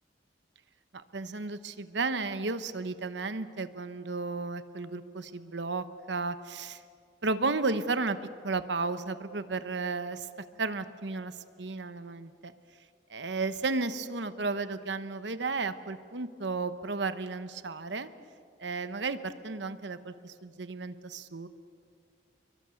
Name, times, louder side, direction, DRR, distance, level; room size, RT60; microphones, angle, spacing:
voice 1, 0.9-6.8 7.2-8.2 8.4-10.3 10.6-12.5 13.1-18.1 18.6-21.5, right 3 dB, 70° right, 11 dB, 1.0 m, -33 dB
28.5 x 23.0 x 7.1 m, 2.2 s
head